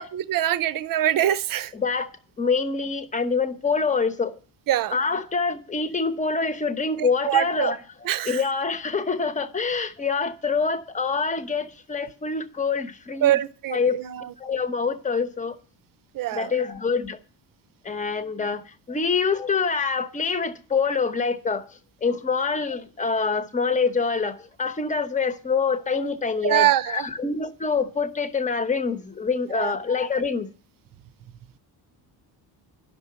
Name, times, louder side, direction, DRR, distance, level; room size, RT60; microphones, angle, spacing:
voice 1, 0.0-1.7 4.7-5.0 7.0-7.7 8.0-8.4 13.2-14.3 16.1-16.6 26.4-27.1 29.5-29.7, right 12 dB, 55° right, 0.8 m, -24 dB
voice 2, 1.7-2.1 2.4-4.3 4.9-7.8 8.3-13.4 13.7-14.0 14.4-15.6 16.3-17.2 17.8-18.6 18.9-21.6 22.0-30.5, left 5 dB, 20° left, 1.0 m, -25 dB
11.5 x 6.7 x 8.7 m
cardioid pair, 165°, 40 cm